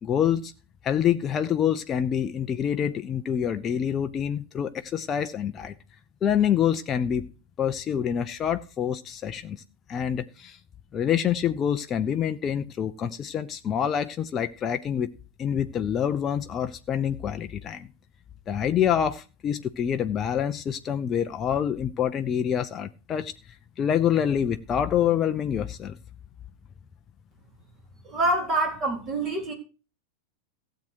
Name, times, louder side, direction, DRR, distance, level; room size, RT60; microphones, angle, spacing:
voice 1, 0.0-0.5 0.8-5.7 6.2-7.3 7.6-9.6 9.9-10.6 10.9-15.1 15.4-17.9 18.5-23.3 23.8-26.0, left 9 dB, 25° left, 0.6 m, -26 dB
voice 2, 28.0-29.5, right 2 dB, 30° right, 4.2 m, -26 dB
16.0 x 7.6 x 4.7 m
figure-of-eight pair, 90°, 0 cm